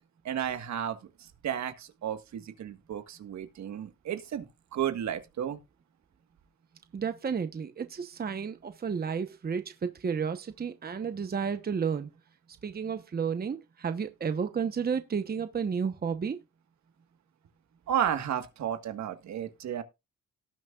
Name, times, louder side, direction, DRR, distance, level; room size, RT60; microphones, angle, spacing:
voice 1, 0.2-4.5 4.7-5.6 17.9-19.8, right 9 dB, 65° right, 1.6 m, -33 dB
voice 2, 6.9-12.1 12.6-16.4, right 6 dB, 30° right, 1.0 m, -32 dB
18.0 x 6.3 x 2.4 m
cardioid pair, 90°, 30 cm